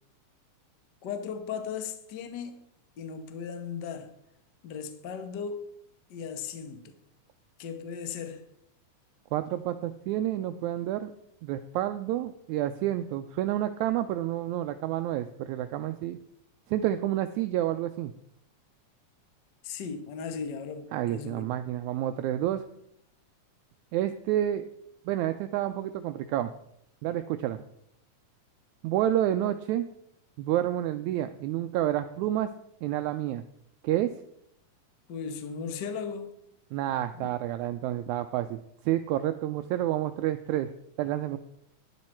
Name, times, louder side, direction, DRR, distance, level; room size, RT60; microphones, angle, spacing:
voice 1, 1.0-2.6 3.0-4.1 4.6-5.7 6.1-6.9 7.6-8.4 19.6-21.5 35.1-36.3 37.1-37.3, left 6 dB, 60° left, 1.2 m, -37 dB
voice 2, 9.3-11.1 11.4-16.2 16.7-18.1 20.9-22.6 23.9-24.7 25.1-26.5 27.0-27.6 28.8-29.9 30.4-32.5 32.8-33.4 33.8-34.1 36.7-40.7 41.0-41.4, right 12 dB, 80° right, 1.8 m, -29 dB
12.0 x 10.5 x 4.5 m
omnidirectional pair, 3.6 m